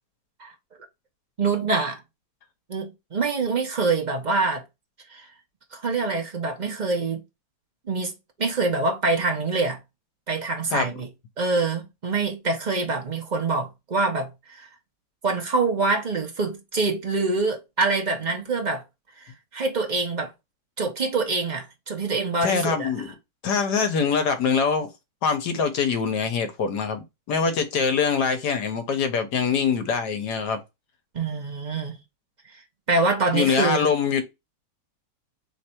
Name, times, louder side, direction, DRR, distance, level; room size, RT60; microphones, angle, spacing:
voice 1, 1.4-2.0 2.7-4.6 5.1-5.3 5.7-7.2 7.9-9.8 10.3-11.1 11.4-14.7 15.2-18.8 19.5-20.3 20.8-22.9 31.1-32.0 32.9-33.9, right 3 dB, 45° right, 0.6 m, -25 dB
voice 2, 22.4-23.1 23.4-24.9 25.2-30.6 33.3-34.2, left 6 dB, 70° left, 1.4 m, -24 dB
3.4 x 3.2 x 4.3 m
omnidirectional pair, 1.9 m